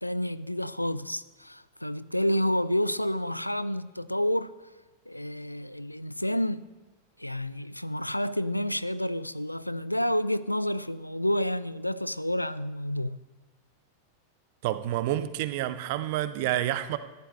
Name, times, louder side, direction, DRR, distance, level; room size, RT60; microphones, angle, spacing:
voice 1, 0.0-4.5 5.1-6.7 7.2-13.2, left 1 dB, 85° left, 0.3 m, -29 dB
voice 2, 14.6-17.0, right 13 dB, 50° right, 0.6 m, -29 dB
14.0 x 11.5 x 3.1 m
figure-of-eight pair, 90°, 0 cm